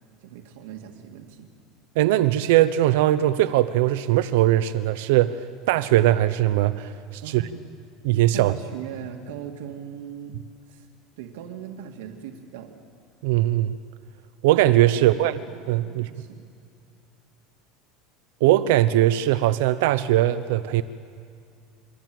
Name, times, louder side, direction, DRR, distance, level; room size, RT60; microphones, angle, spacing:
voice 1, 0.2-1.5 7.2-7.7 8.3-10.4 10.7-10.9 11.2-12.8 14.9-16.5, right 9 dB, 90° right, 4 dB, 2.1 m, -39 dB
voice 2, 2.0-5.4 5.7-7.4 8.0-8.5 13.2-13.8 14.4-15.3 15.7-16.1 18.4-20.8, right 14 dB, 75° right, 13 dB, 0.8 m, -20 dB
27.0 x 24.0 x 7.7 m, 2.2 s
cardioid pair, 170°, 0 cm